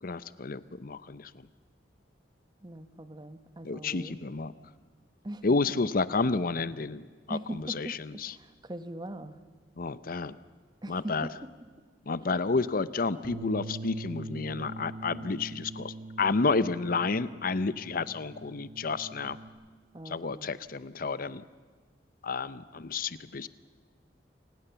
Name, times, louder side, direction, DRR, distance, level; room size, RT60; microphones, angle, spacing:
voice 1, 0.0-1.5 3.6-4.5 5.4-8.3 9.8-10.4 10.9-11.3 12.1-19.4 20.1-21.4 22.2-23.5, left 4 dB, 55° left, 15 dB, 0.7 m, -30 dB
voice 2, 2.6-4.2 5.2-5.5 7.3-9.4 10.8-11.5 19.9-20.5, right 1 dB, 25° right, 11 dB, 1.0 m, -41 dB
Bass guitar, 13.2-19.5, right 2 dB, 55° right, 2.8 m, -42 dB
28.5 x 19.0 x 7.0 m, 1.5 s
head